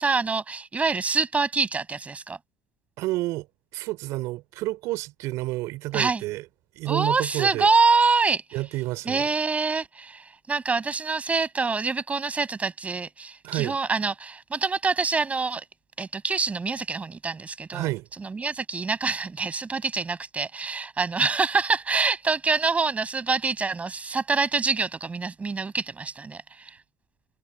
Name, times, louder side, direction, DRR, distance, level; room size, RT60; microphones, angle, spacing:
voice 1, 0.0-2.4 5.9-6.2 6.8-8.4 9.0-15.6 16.0-17.9 18.2-26.7, right 4 dB, 25° right, 6.7 m, -26 dB
voice 2, 3.0-3.5 3.7-6.5 6.7-7.7 8.5-9.3 13.4-13.8 17.7-18.1 21.9-22.0, right 19 dB, 65° right, 3.5 m, -29 dB
hypercardioid pair, 70°, 6 cm